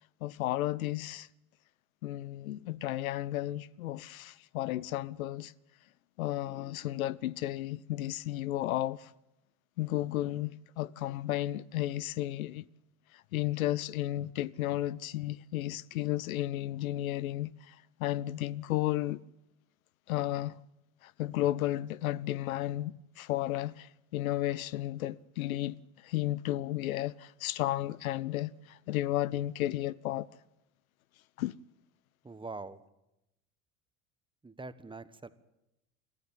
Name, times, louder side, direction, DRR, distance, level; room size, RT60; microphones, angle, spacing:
voice 1, 0.2-1.3 2.0-5.5 6.2-9.1 9.8-12.6 13.3-19.2 20.1-20.6 21.0-30.3 31.4-31.6, left 14 dB, 80° left, 0.7 m, -33 dB
voice 2, 32.2-32.8 34.4-35.3, right 3 dB, 10° right, 1.3 m, -43 dB
23.0 x 14.5 x 9.0 m
hypercardioid pair, 80°, 41 cm